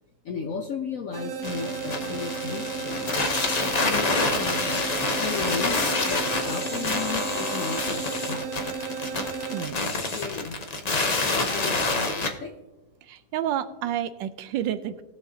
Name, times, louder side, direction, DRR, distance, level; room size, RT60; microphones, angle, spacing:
voice 1, 0.2-3.2 3.8-4.9 5.2-8.6 10.1-10.6 10.8-12.5, left 5 dB, 65° left, 5 dB, 0.8 m, -35 dB
sound 1, 1.1-9.7, right 6 dB, 60° right, 0.8 m, -34 dB
sound 2, 1.4-12.3, left 3 dB, 50° left, 0.5 m, -27 dB
voice 2, 13.0-15.0, right 10 dB, 90° right, 12 dB, 1.3 m, -30 dB
19.0 x 6.7 x 2.7 m, 1.1 s
omnidirectional pair, 2.0 m